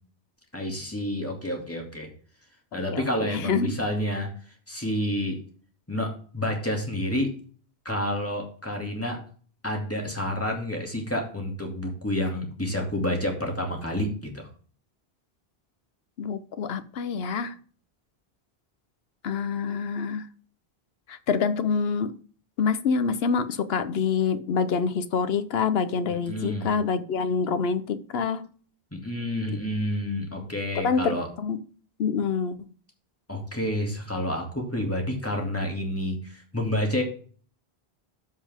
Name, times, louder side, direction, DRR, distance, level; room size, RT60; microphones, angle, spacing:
voice 1, 0.5-2.1 2.7-4.3 4.7-5.4 5.9-7.3 7.8-9.2 9.6-14.5 26.1-26.7 28.9-31.3 33.3-37.0, left 1 dB, 15° left, 1 dB, 2.4 m, -29 dB
voice 2, 2.7-3.7 16.2-17.5 19.2-20.3 21.1-22.1 22.6-28.5 29.5-29.6 30.8-31.6 32.0-32.6, left 5 dB, 75° left, 12 dB, 1.0 m, -26 dB
13.0 x 5.4 x 3.6 m, 0.43 s
omnidirectional pair, 1.1 m